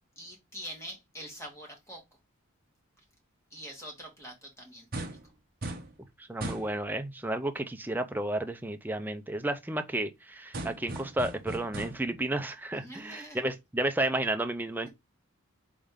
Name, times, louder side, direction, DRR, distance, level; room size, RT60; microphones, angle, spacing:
voice 1, 0.2-2.0 3.5-5.0 12.7-13.4, equal, 15° left, 1.6 m, -44 dB
sound 1, 4.9-5.3 5.6-5.9 6.4-6.7 10.5-12.1, right 1 dB, 40° right, 1.0 m, -38 dB
voice 2, 6.2-14.9, right 1 dB, 10° right, 0.4 m, -32 dB
4.1 x 3.4 x 3.6 m
head